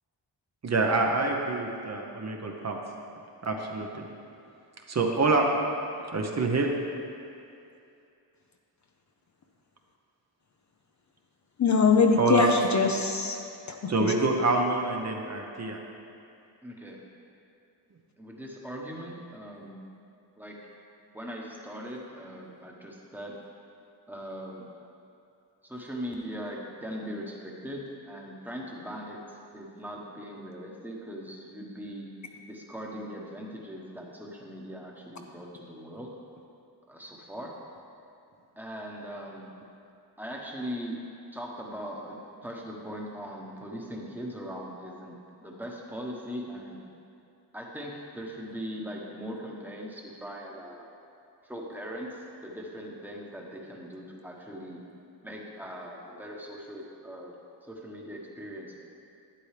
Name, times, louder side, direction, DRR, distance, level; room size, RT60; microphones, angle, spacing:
voice 1, 0.6-2.8 3.4-4.1 4.9-5.5 6.1-6.7 12.2-12.5 13.9-15.8, right 3 dB, 40° right, 1 dB, 0.8 m, -26 dB
voice 2, 11.6-13.4 13.7-14.1, left 5 dB, 45° left, 3 dB, 0.6 m, -23 dB
voice 3, 16.6-17.0 18.2-19.8 20.4-20.6 21.1-23.3 24.1-24.6 25.6-29.2 29.5-32.1 32.5-36.1 36.9-37.5 38.6-39.5 40.2-40.9 41.3-42.1 42.4-46.8 47.5-50.9 51.4-54.8 55.2-57.3 57.7-58.8, equal, 5° right, -2 dB, 1.1 m, -40 dB
11.5 x 9.2 x 3.3 m, 2.6 s
wide cardioid pair, 140°, 43 cm